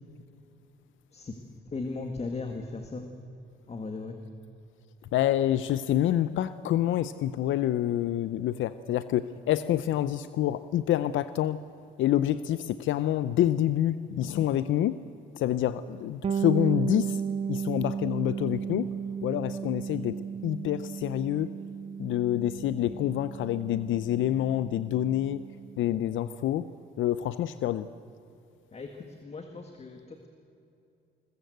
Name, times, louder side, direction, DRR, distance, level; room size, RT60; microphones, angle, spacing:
voice 1, 1.7-3.1 3.7-4.2 28.7-30.3, left 3 dB, 35° left, 5 dB, 1.9 m, -37 dB
voice 2, 5.1-11.6 12.0-15.0 15.3-17.2 17.5-18.9 19.2-20.2 20.4-21.5 22.0-25.4 25.8-26.7 27.0-27.9, left 12 dB, 75° left, 14 dB, 0.6 m, -27 dB
Bass guitar, 16.2-25.8, right 7 dB, 30° right, 0.4 m, -34 dB
21.0 x 21.0 x 8.0 m, 2.7 s
cardioid pair, 90°, 20 cm